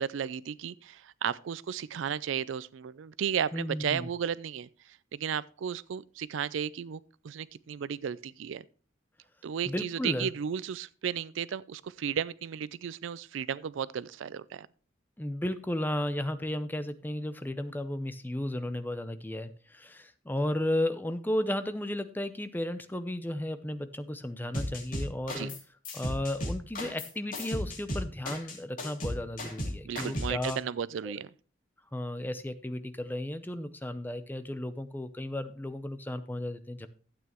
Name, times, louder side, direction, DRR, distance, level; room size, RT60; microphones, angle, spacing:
voice 1, 0.0-4.7 5.1-8.6 9.4-14.7 25.4-25.5 29.8-31.3, right 8 dB, 75° right, 0.4 m, -34 dB
voice 2, 3.5-4.1 9.7-10.3 15.2-25.5 25.9-30.6 31.0-31.1 31.9-36.9, left 1 dB, 10° left, 0.6 m, -34 dB
sound 1, 24.5-25.6 25.8-30.5, left 1 dB, 45° left, 2.8 m, -35 dB
12.5 x 8.8 x 3.0 m
head